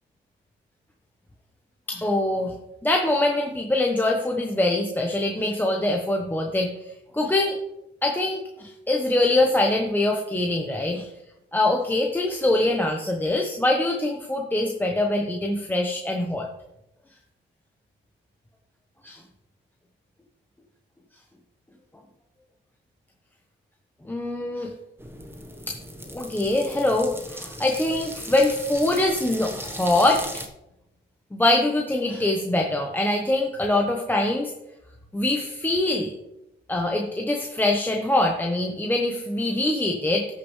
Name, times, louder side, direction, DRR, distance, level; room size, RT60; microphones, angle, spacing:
voice 1, 1.9-2.5 2.8-6.7 7.1-7.6 8.0-11.1 11.5-16.5 19.0-19.2 24.1-24.7 25.7-25.8 26.1-30.3 31.3-34.5 35.1-36.1 36.7-40.3, left 2 dB, 10° left, 1 dB, 1.0 m, -23 dB
sound 1, 25.0-30.5, right 1 dB, 10° right, 1.3 m, -38 dB
13.0 x 6.5 x 3.2 m, 0.87 s
cardioid pair, 90°, 20 cm